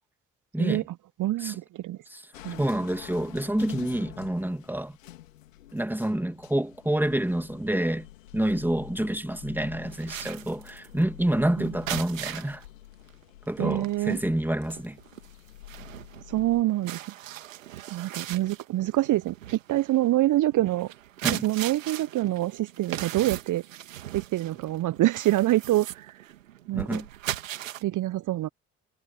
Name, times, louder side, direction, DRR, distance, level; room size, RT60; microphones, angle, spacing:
voice 1, 0.5-0.8 1.4-1.6 2.1-2.2 2.6-5.0 5.7-8.1 8.3-12.6 13.5-15.0 21.2-21.4 26.7-27.1, right 1 dB, 5° right, 2.5 m, -28 dB
voice 2, 1.2-2.0 2.4-2.6 11.6-11.7 13.6-14.2 16.3-17.0 17.9-20.9 21.2-23.6 24.1-26.2 26.7-27.0 27.8-28.5, right 15 dB, 55° right, 0.9 m, -26 dB
sound 1, 2.3-16.6, left 14 dB, 80° left, 2.8 m, -47 dB
sound 2, 9.8-12.6 13.1-13.2 13.6-27.8, right 12 dB, 85° right, 2.7 m, -39 dB
figure-of-eight pair, 45°, 38 cm